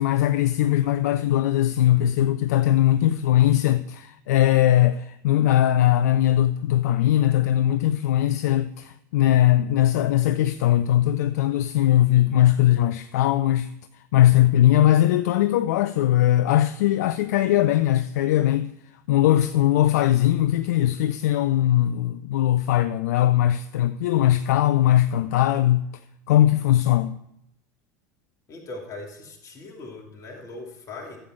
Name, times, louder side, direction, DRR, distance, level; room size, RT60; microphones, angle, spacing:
voice 1, 0.0-13.7 13.9-18.7 19.1-25.8 26.3-27.2, left 13 dB, 60° left, 0.4 m, -20 dB
voice 2, 28.5-31.2, left 2 dB, 35° left, 2.7 m, -39 dB
12.5 x 7.9 x 4.4 m
figure-of-eight pair, 75°, 10 cm